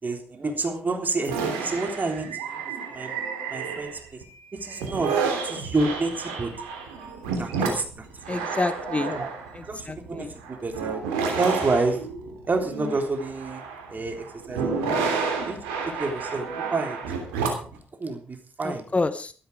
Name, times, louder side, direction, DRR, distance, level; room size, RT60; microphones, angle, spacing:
voice 1, 0.0-3.2 3.5-4.2 4.5-5.1 5.4-6.5 7.4-8.5 9.1-9.3 9.6-11.0 11.4-12.0 12.5-13.6 13.9-15.0 15.5-15.6 15.9-17.2 18.0-18.9, right 3 dB, 40° right, 5 dB, 3.6 m, -29 dB
sound 1, 1.2-4.2 4.7-17.8, right 5 dB, 80° right, 3.1 m, -30 dB
voice 2, 8.3-9.2 9.9-10.3 18.6-19.3, left 3 dB, 25° left, 13 dB, 1.1 m, -28 dB
13.5 x 12.5 x 4.9 m, 0.41 s
hypercardioid pair, 40°, 5 cm